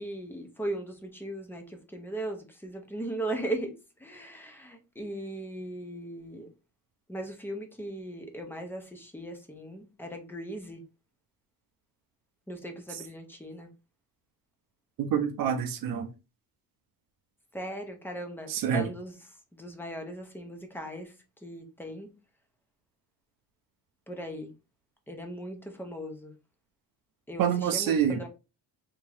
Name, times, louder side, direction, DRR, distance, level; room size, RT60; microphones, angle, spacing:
voice 1, 0.0-3.7 4.0-6.5 7.1-10.8 12.5-13.7 17.5-19.1 19.5-21.1 21.4-22.1 24.1-24.5 25.1-26.3 27.3-28.3, right 1 dB, 5° left, 0.5 m, -38 dB
voice 2, 15.0-16.1 18.5-18.9 27.4-28.2, right 8 dB, 65° right, 0.6 m, -27 dB
3.5 x 2.6 x 3.2 m
cardioid pair, 170°, 38 cm